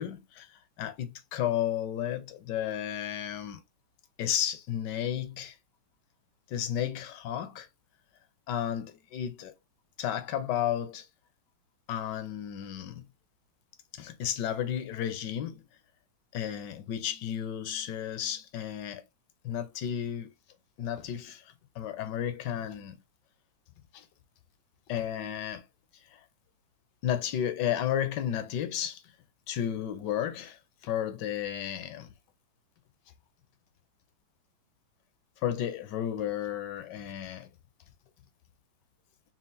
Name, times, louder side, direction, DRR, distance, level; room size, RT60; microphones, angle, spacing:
voice 1, 0.0-3.6 4.2-5.6 6.5-7.7 8.5-9.5 10.0-11.1 11.9-13.1 13.9-15.6 16.3-19.0 19.4-20.3 20.8-23.0 23.9-24.1 24.9-25.7 26.1-26.2 27.0-29.0 29.5-32.1 35.4-37.5, left 10 dB, 70° left, 1.2 m, -33 dB
5.6 x 2.5 x 2.5 m
omnidirectional pair, 2.1 m